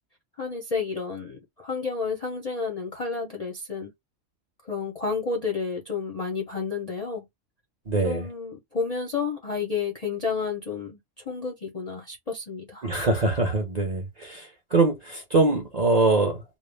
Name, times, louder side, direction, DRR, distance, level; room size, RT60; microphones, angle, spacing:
voice 1, 0.4-3.9 4.6-7.3 8.0-11.0 11.3-12.9, left 5 dB, 45° left, 0.5 m, -31 dB
voice 2, 7.9-8.3 12.8-16.4, right 3 dB, 45° right, 0.6 m, -23 dB
2.4 x 2.0 x 3.1 m
omnidirectional pair, 1.5 m